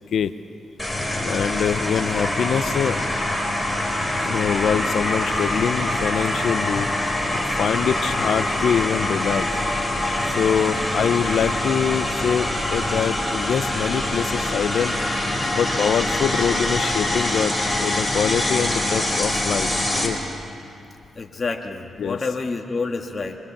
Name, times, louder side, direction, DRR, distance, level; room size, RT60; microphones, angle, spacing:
sound 1, 0.8-20.1, left 1 dB, 5° left, 4.7 m, -24 dB
voice 1, 1.2-3.0 4.2-6.9 7.6-9.5 10.2-14.9 15.5-20.2 22.0-22.2, left 7 dB, 70° left, 11 dB, 0.7 m, -24 dB
voice 2, 21.2-23.4, left 4 dB, 40° left, 2 dB, 1.8 m, -28 dB
25.0 x 23.5 x 7.3 m, 2.6 s
cardioid pair, 75°, 0 cm